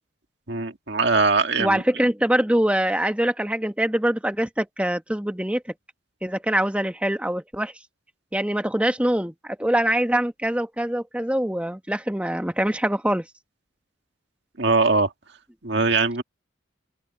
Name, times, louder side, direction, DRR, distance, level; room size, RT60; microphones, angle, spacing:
voice 1, 0.5-1.8 14.6-15.1 15.6-16.2, right 3 dB, 60° right, 2.0 m, -21 dB
voice 2, 1.6-5.6 6.2-7.7 8.3-13.2, right 1 dB, 5° right, 1.3 m, -24 dB
open air
head